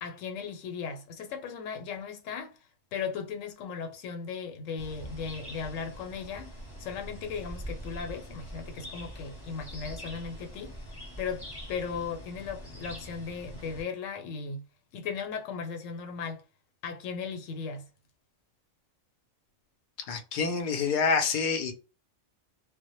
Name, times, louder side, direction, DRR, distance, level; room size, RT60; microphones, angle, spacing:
voice 1, 0.0-2.5 2.9-6.5 6.8-10.7 11.2-14.7 14.9-16.4 16.8-17.9, left 6 dB, 85° left, 1.0 m, -37 dB
sound 1, 4.8-13.8, equal, 20° left, 0.7 m, -43 dB
voice 2, 20.1-21.7, left 5 dB, 60° left, 0.6 m, -27 dB
2.1 x 2.0 x 2.9 m
omnidirectional pair, 1.3 m